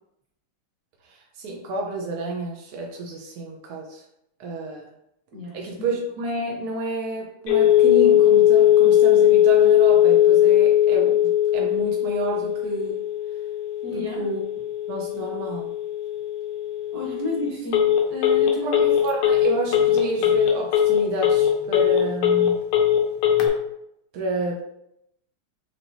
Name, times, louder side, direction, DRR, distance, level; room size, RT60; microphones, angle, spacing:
voice 1, 1.1-4.0 4.4-4.9 5.5-13.0 13.9-14.4 14.9-15.7 18.6-18.8 19.0-22.6 24.1-24.6, right 2 dB, 75° right, 0 dB, 0.9 m, -30 dB
voice 2, 5.3-5.7 13.8-14.3 16.9-18.8, left 2 dB, 50° right, -3 dB, 1.5 m, -32 dB
Telephone, 7.5-23.5, left 11 dB, 85° left, 1.6 m, -19 dB
6.9 x 2.9 x 2.6 m, 0.78 s
omnidirectional pair, 2.4 m